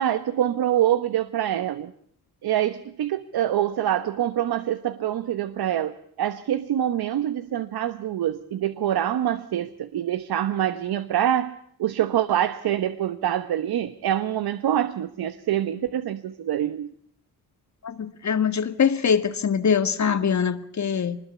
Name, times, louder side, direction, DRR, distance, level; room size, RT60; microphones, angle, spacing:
voice 1, 0.0-1.9 2.4-16.9, right 11 dB, 80° right, 1.2 m, -25 dB
voice 2, 17.8-21.2, left 7 dB, 50° left, 1.9 m, -23 dB
25.0 x 21.0 x 8.2 m
cardioid pair, 95°, 37 cm